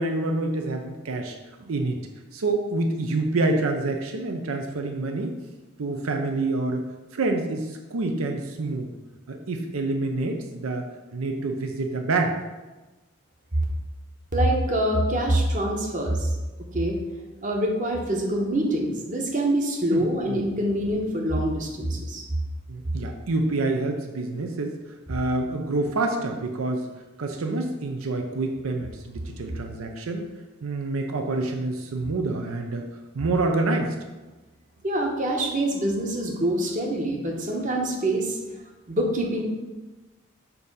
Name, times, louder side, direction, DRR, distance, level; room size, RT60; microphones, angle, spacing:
voice 1, 0.0-2.0 2.3-5.4 5.8-8.9 9.3-12.4 19.9-20.4 22.7-24.8 25.1-26.9 27.2-30.3 30.6-32.9 33.1-34.0, right 2 dB, 85° right, 4 dB, 0.6 m, -27 dB
voice 2, 14.3-16.3 16.7-17.0 17.4-22.2 34.8-38.4 38.9-39.4, right 1 dB, 40° right, 0 dB, 0.9 m, -25 dB
6.8 x 2.7 x 5.3 m, 1.2 s
head